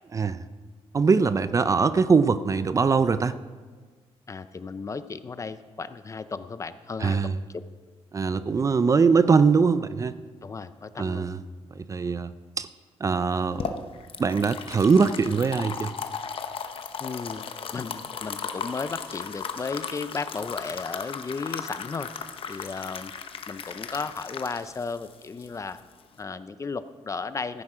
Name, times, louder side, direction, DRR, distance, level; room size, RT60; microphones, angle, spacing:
voice 1, 0.1-0.4 0.9-3.3 7.0-7.3 8.1-10.2 11.0-11.4 11.7-12.3 12.6-12.7 13.0-13.9 14.2-15.9, right 5 dB, 30° right, 13 dB, 0.4 m, -22 dB
voice 2, 4.3-7.6 10.4-11.3 17.0-17.5 17.7-22.1 22.5-23.1 23.5-25.8 26.2-27.6, left 4 dB, 30° left, 13 dB, 0.5 m, -34 dB
sound 1, 13.2-26.2, left 6 dB, 55° left, 0.8 m, -36 dB
14.5 x 9.7 x 4.9 m, 1.5 s
wide cardioid pair, 130°, 11 cm